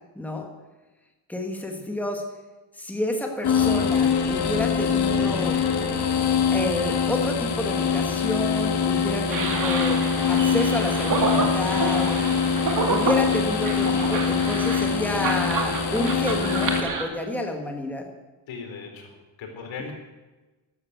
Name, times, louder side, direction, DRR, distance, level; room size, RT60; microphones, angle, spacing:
voice 1, 0.2-0.5 1.3-2.2 2.8-5.6 6.5-10.0 10.3-12.2 12.9-18.1 19.8-19.9, left 1 dB, 5° left, 2 dB, 1.7 m, -29 dB
sound 1, 3.4-16.8, left 6 dB, 60° left, 1.9 m, -24 dB
sound 2, 9.3-17.0, right 4 dB, 45° right, 2.3 m, -29 dB
voice 2, 18.5-19.9, left 5 dB, 85° left, 3 dB, 4.2 m, -38 dB
13.5 x 13.0 x 8.1 m, 1.2 s
wide cardioid pair, 175°, 45 cm